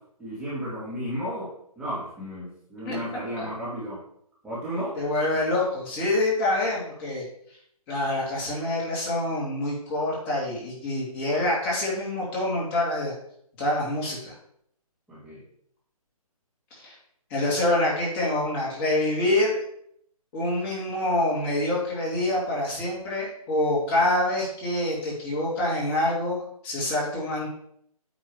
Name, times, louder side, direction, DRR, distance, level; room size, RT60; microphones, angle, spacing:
voice 1, 0.2-4.0 4.4-5.0 15.1-15.4, equal, 5° right, -11 dB, 2.1 m, -33 dB
voice 2, 5.0-7.2 7.9-13.1 13.6-14.3 16.7-16.9 17.3-19.6 20.3-27.5, left 1 dB, 20° left, -5 dB, 2.5 m, -26 dB
8.9 x 3.7 x 4.8 m, 0.69 s
hypercardioid pair, 155°, 19 cm